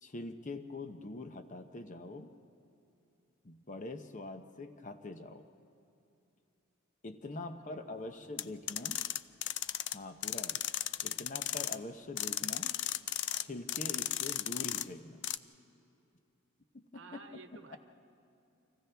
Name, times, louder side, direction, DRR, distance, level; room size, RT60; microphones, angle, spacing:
voice 1, 0.0-2.4 3.4-5.5 7.0-9.1 9.9-10.7 11.0-12.8 13.4-15.3 16.7-17.2 17.7-17.8, left 2 dB, 35° left, 8 dB, 0.8 m, -44 dB
voice 2, 7.4-8.3 16.9-17.8, right 4 dB, 60° right, 6 dB, 1.1 m, -54 dB
sound 1, 8.4-10.0 10.2-11.8 12.2-13.4 13.7-14.8 15.2-15.4, left 13 dB, 55° left, 0.4 m, -35 dB
30.0 x 25.5 x 3.5 m, 2.7 s
head